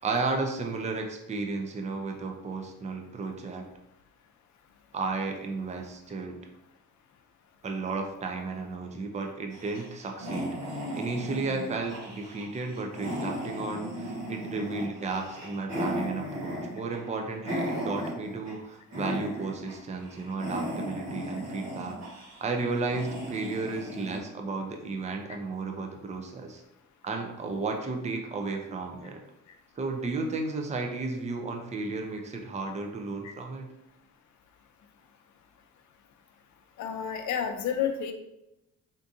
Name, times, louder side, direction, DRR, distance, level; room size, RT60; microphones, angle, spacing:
voice 1, 0.0-3.7 4.9-6.4 7.6-26.6 27.0-29.2 29.8-33.7, right 3 dB, 25° right, 3 dB, 0.5 m, -33 dB
sound 1, 9.5-18.6 18.9-19.7 20.0-24.2, equal, 60° right, 1.5 m, -36 dB
voice 2, 36.8-38.1, left 8 dB, 70° left, 6 dB, 0.5 m, -30 dB
3.6 x 2.6 x 2.6 m, 0.86 s
cardioid pair, 90°, 30 cm